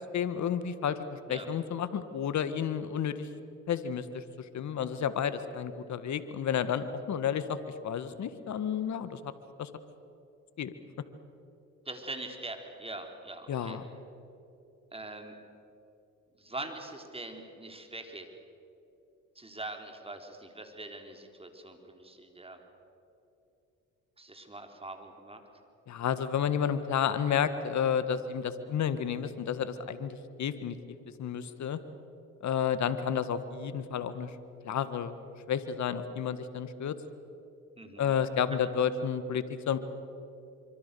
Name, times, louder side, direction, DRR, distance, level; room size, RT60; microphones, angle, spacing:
voice 1, 0.1-3.3 3.7-4.2 4.5-7.6 7.8-9.3 9.6-9.7 10.6-10.7 13.5-13.8 25.9-30.7 31.2-31.8 32.4-34.3 34.6-35.1 35.5-36.9 38.0-39.8, left 8 dB, 55° left, 12 dB, 1.7 m, -31 dB
voice 2, 11.9-13.8 14.9-15.4 16.4-18.3 19.4-22.6 24.2-25.4 37.8-38.2 38.5-38.6, right 2 dB, 15° right, 4 dB, 4.0 m, -43 dB
25.0 x 25.0 x 7.0 m, 2.8 s
supercardioid pair, 65°, 33 cm